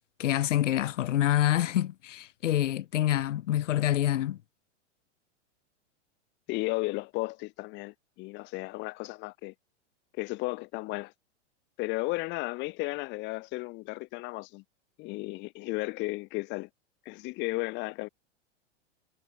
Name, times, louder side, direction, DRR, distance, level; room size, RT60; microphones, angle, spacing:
voice 1, 0.2-4.4, left 12 dB, 85° left, 1.4 m, -26 dB
voice 2, 6.5-9.5 10.2-11.1 11.8-14.6 15.0-16.7 17.0-18.1, left 23 dB, 30° left, 1.1 m, -34 dB
supercardioid pair, 150°, 36 cm